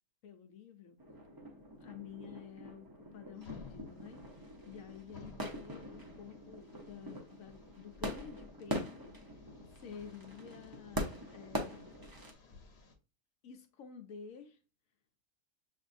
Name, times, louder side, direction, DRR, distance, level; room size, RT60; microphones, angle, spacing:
voice 1, 0.2-1.0 1.8-9.1 9.4-9.5 9.8-11.9 13.4-14.6, left 7 dB, 80° left, 1.0 m, -51 dB
sound 1, 1.0-12.3, equal, 20° right, 0.7 m, -43 dB
sound 2, 3.4-12.9, left 3 dB, 55° left, 1.1 m, -57 dB
7.4 x 2.6 x 2.5 m
omnidirectional pair, 1.4 m